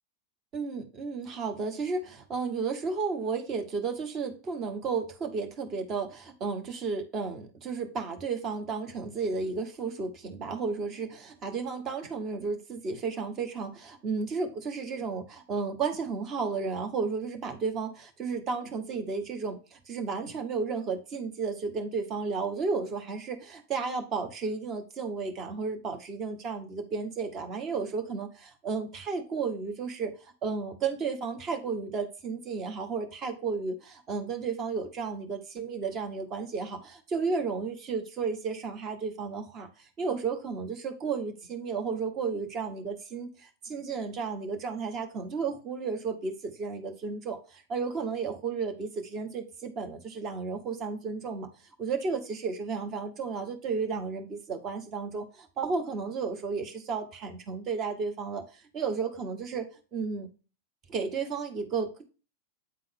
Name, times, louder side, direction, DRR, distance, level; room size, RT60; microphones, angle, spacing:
voice 1, 0.5-51.5 51.8-59.7 59.9-60.3 60.9-62.1, right 5 dB, 30° right, 5 dB, 1.2 m, -33 dB
8.8 x 3.8 x 3.6 m, 0.34 s
figure-of-eight pair, 90°, 0 cm